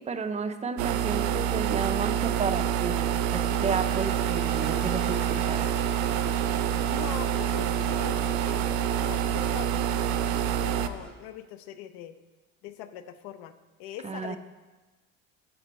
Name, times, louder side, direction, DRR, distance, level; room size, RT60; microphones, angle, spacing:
voice 1, 0.0-5.7 14.0-14.4, right 5 dB, 20° right, 8 dB, 0.5 m, -32 dB
sound 1, 0.8-10.9, right 9 dB, 75° right, 0.5 m, -27 dB
Engine, 3.4-9.9, left 2 dB, 30° left, 1.1 m, -46 dB
sound 2, 5.2-11.1, equal, ahead, 1.1 m, -48 dB
voice 2, 6.9-12.2 12.6-13.5 13.8-14.4, left 11 dB, 70° left, 12 dB, 0.6 m, -42 dB
6.0 x 5.0 x 4.2 m, 1.2 s
supercardioid pair, 75°, 37 cm